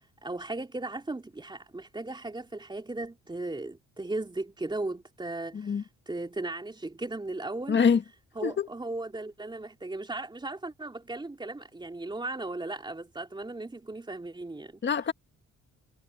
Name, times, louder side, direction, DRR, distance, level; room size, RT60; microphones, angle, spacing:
voice 1, 0.2-7.8 8.3-14.8, right 2 dB, 15° right, 3.5 m, -36 dB
voice 2, 7.7-8.0 8.4-8.7 14.8-15.1, left 6 dB, 35° left, 1.5 m, -24 dB
cardioid pair, 90°, 30 cm